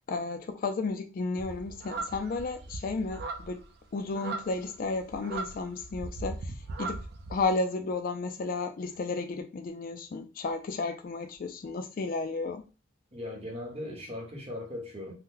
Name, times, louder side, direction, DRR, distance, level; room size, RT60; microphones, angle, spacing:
voice 1, 0.1-3.6 3.9-6.4 6.8-7.0 7.3-12.6, left 3 dB, 45° left, 0.3 m, -33 dB
sound 1, 1.4-7.5, right 3 dB, 50° right, 0.4 m, -39 dB
voice 2, 13.1-15.1, left 1 dB, 30° right, 0.9 m, -38 dB
2.8 x 2.1 x 3.7 m
head